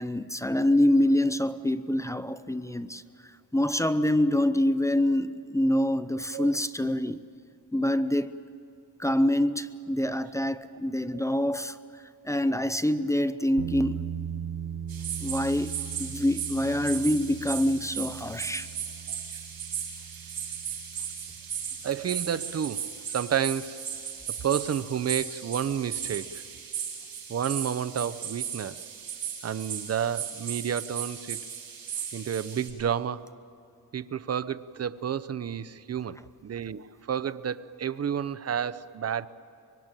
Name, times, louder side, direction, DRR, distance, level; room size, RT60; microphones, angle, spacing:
voice 1, 0.0-3.0 3.5-7.2 7.7-8.3 9.0-11.8 12.2-14.0 15.2-18.7, left 1 dB, 10° left, 0.7 m, -26 dB
sound 1, 13.6-22.5, right 8 dB, 90° right, 1.6 m, -40 dB
sound 2, 14.9-32.7, right 8 dB, 60° right, 6.7 m, -36 dB
voice 2, 21.8-23.8 24.4-26.4 27.3-28.9 29.4-31.4 32.1-33.3 33.9-39.3, right 8 dB, 40° right, 0.8 m, -30 dB
25.5 x 23.0 x 9.1 m
cardioid pair, 105°, 40 cm